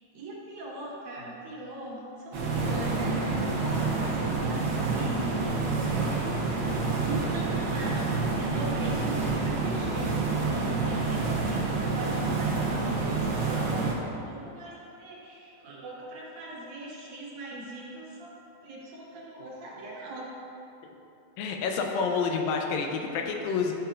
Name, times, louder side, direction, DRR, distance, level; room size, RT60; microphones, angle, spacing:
voice 1, 0.0-20.3, right 1 dB, 70° right, -4 dB, 2.2 m, -40 dB
sound 1, 2.3-13.9, right 3 dB, 90° right, 1.2 m, -28 dB
voice 2, 21.4-23.7, left 5 dB, 85° left, 2 dB, 2.5 m, -28 dB
11.5 x 5.8 x 2.4 m, 2.7 s
omnidirectional pair, 4.1 m